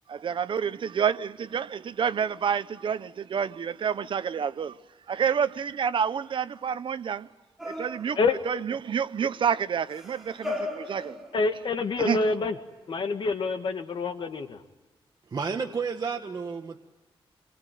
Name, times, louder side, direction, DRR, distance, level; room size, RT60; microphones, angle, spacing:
voice 1, 0.1-4.8 5.1-7.3 7.6-8.2 8.4-11.2 12.0-12.2, right 7 dB, 60° right, 0.9 m, -28 dB
sound 1, 7.6-8.4 9.9-11.8 13.2-13.3, left 2 dB, 5° right, 3.3 m, -37 dB
voice 2, 11.3-12.6 12.9-14.6, left 4 dB, 60° left, 2.0 m, -26 dB
voice 3, 15.3-16.8, right 5 dB, 40° right, 1.8 m, -31 dB
27.5 x 23.0 x 9.3 m
wide cardioid pair, 130°, 10 cm